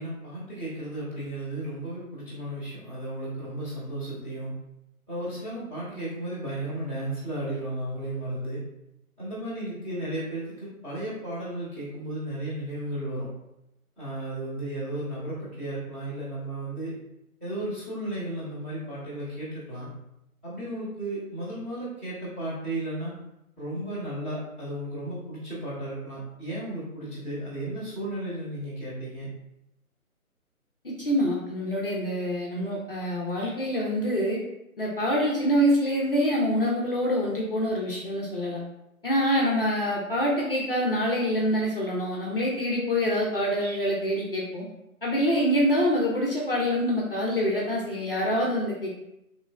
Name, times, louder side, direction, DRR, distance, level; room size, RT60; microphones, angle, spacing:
voice 1, 0.0-4.5 5.1-8.6 9.2-13.3 14.0-16.9 17.4-19.9 20.4-23.1 23.6-29.3, right 1 dB, 10° right, -14 dB, 0.7 m, -34 dB
voice 2, 30.8-34.4 34.8-38.6 39.0-44.6 45.0-48.9, equal, 40° left, -4 dB, 0.5 m, -25 dB
3.0 x 3.0 x 2.3 m, 0.87 s
figure-of-eight pair, 145°, 44 cm